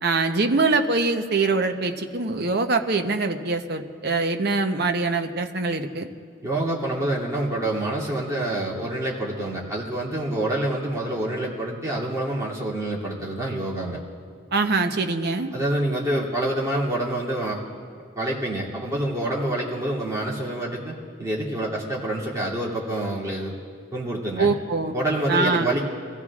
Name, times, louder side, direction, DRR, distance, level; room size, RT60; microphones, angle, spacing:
voice 1, 0.0-6.1 14.5-15.5 24.4-24.9 25.3-25.7, right 3 dB, 55° right, 6 dB, 0.8 m, -23 dB
voice 2, 6.4-14.0 15.5-17.6 18.1-23.5 23.9-24.5 24.9-25.8, right 1 dB, 15° right, -6 dB, 2.7 m, -27 dB
24.0 x 15.5 x 2.4 m, 2.1 s
head